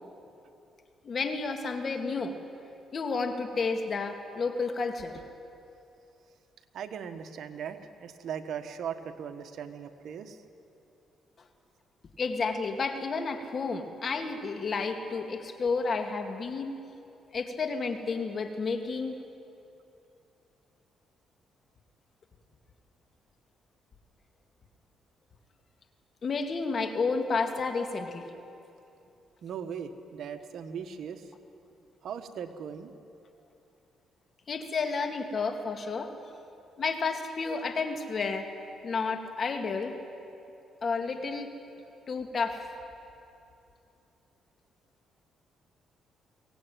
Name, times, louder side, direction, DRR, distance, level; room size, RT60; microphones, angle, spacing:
voice 1, 1.0-2.3 2.9-5.2 12.2-16.8 17.3-19.2 26.2-28.3 34.5-36.1 36.8-38.5 38.8-40.0 40.8-41.5 42.1-42.6, left 4 dB, 45° left, 6 dB, 2.2 m, -31 dB
voice 2, 6.7-10.4 29.4-31.3 32.0-32.9, right 7 dB, 70° right, 8 dB, 1.4 m, -39 dB
23.0 x 18.0 x 9.2 m, 2.7 s
cardioid pair, 95°, 0 cm